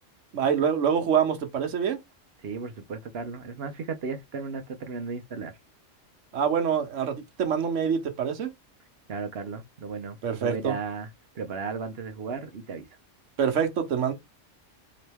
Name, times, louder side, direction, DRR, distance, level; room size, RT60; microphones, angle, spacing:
voice 1, 0.3-2.0 6.3-8.5 10.2-10.8 13.4-14.1, right 7 dB, 70° right, 1.2 m, -25 dB
voice 2, 2.4-5.5 9.1-11.1 11.3-12.9, right 5 dB, 55° right, 0.9 m, -35 dB
3.8 x 3.0 x 3.4 m
omnidirectional pair, 1.3 m